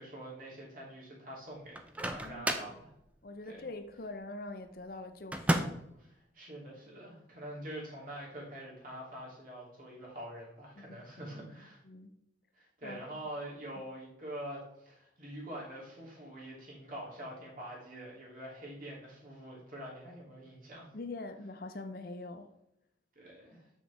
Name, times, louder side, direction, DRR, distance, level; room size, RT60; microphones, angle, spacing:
voice 1, 0.0-2.9 3.4-3.6 6.3-11.8 12.5-20.9 23.1-23.7, right 1 dB, 45° right, 2.9 m, -45 dB
Microwave oven, 1.7-2.8 5.3-5.9, right 1 dB, 5° right, 0.5 m, -32 dB
voice 2, 2.2-2.8 3.2-5.8 10.8-11.0 11.8-12.2 12.8-13.1 20.9-22.6, left 2 dB, 50° left, 0.6 m, -44 dB
7.3 x 6.2 x 3.4 m
head